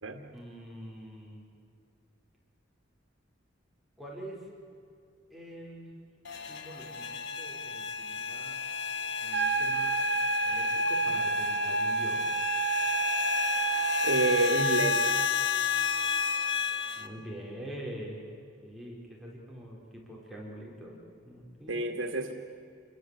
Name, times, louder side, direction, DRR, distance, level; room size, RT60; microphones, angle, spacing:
voice 1, 0.3-1.4 4.0-4.5 5.3-5.9 6.4-8.6 9.2-10.0 10.4-12.2 17.0-18.2 18.6-21.0 21.2-21.8, equal, ahead, -4 dB, 4.5 m, -44 dB
sound 1, 6.2-17.1, left 7 dB, 60° left, 1.4 m, -32 dB
sound 2, 9.3-15.3, right 4 dB, 60° right, 1.5 m, -29 dB
voice 2, 14.0-15.1 21.7-22.3, right 2 dB, 85° right, 5 dB, 2.0 m, -28 dB
28.0 x 22.0 x 8.3 m, 2.5 s
head